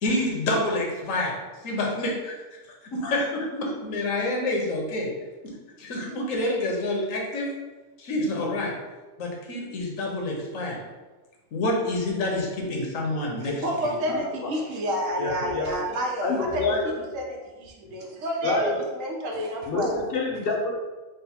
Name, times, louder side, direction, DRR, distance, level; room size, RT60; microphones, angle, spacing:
voice 1, 0.0-1.3 1.6-5.1 5.4-5.5 5.8-7.5 8.0-8.7 9.2-10.8 11.5-13.5, left 1 dB, 85° left, -1 dB, 1.2 m, -28 dB
voice 2, 13.4-16.8 17.1-20.0, equal, 90° right, 0 dB, 1.1 m, -29 dB
voice 3, 14.1-14.5 15.2-15.7 16.2-17.0 18.4-18.8 19.7-20.8, left 3 dB, 60° left, 0 dB, 0.7 m, -27 dB
4.0 x 2.1 x 4.1 m, 1.2 s
omnidirectional pair, 1.3 m